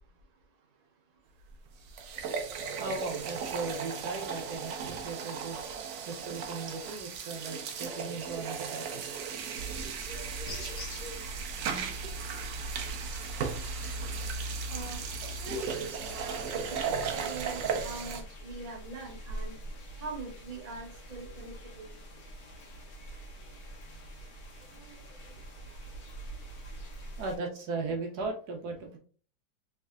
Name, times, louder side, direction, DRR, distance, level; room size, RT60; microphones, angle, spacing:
sound 1, 1.5-1.6 1.9-18.2, right 6 dB, 90° right, 0.7 m, -37 dB
voice 1, 2.8-5.6 6.1-8.9 9.2-9.3 9.8-9.9 24.6-25.4 25.7-25.8 27.2-29.0, right 3 dB, 70° right, 2 dB, 1.1 m, -37 dB
sound 2, 9.6-27.4, right 1 dB, 55° left, 1.4 m, -42 dB
voice 2, 14.7-19.5 20.0-21.9, right 2 dB, 40° right, 0 dB, 0.6 m, -42 dB
3.6 x 3.2 x 2.3 m, 0.42 s
omnidirectional pair, 2.0 m